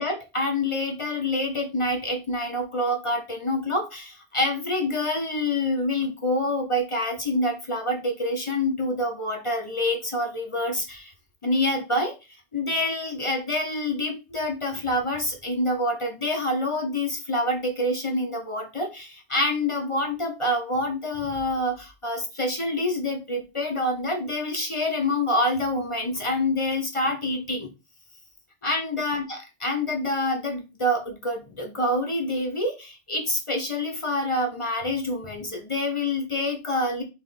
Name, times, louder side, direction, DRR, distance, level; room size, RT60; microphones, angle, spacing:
voice 1, 0.0-11.1 11.4-12.1 12.5-27.7 28.6-37.0, left 1 dB, 35° left, 3 dB, 0.6 m, -27 dB
3.4 x 3.2 x 3.9 m, 0.27 s
omnidirectional pair, 1.2 m